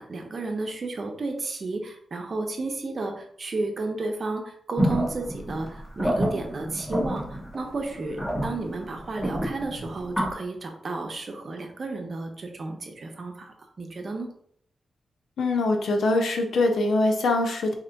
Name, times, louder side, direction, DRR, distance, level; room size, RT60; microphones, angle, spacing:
voice 1, 0.0-7.2 7.5-14.3, right 3 dB, 50° right, 3 dB, 0.8 m, -32 dB
sound 1, 4.8-10.3, equal, 10° left, 1.6 m, -29 dB
voice 2, 15.4-17.7, left 2 dB, 85° left, 4 dB, 0.6 m, -23 dB
3.3 x 2.9 x 4.0 m, 0.64 s
wide cardioid pair, 100°, 0 cm